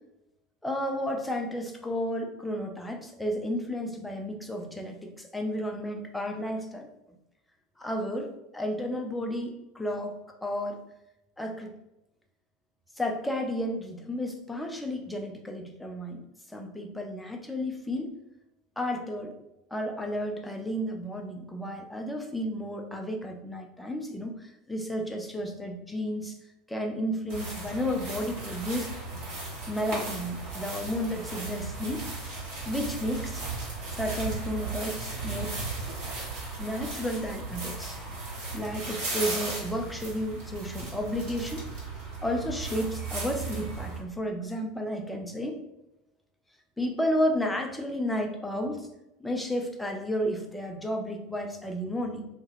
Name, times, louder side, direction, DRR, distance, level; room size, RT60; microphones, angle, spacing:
voice 1, 0.6-6.9 7.8-10.1 10.4-10.8 11.4-11.7 13.0-16.2 16.5-18.1 18.8-19.3 19.7-26.3 26.7-28.9 29.7-32.1 32.6-33.4 33.9-35.5 36.6-38.0 38.5-41.6 42.2-45.6 46.8-48.9 49.2-52.3, equal, 5° left, 3 dB, 0.4 m, -32 dB
sound 1, 27.3-44.0, right 3 dB, 50° right, 1.0 m, -36 dB
2.2 x 2.1 x 3.1 m, 0.91 s
figure-of-eight pair, 75°, 0 cm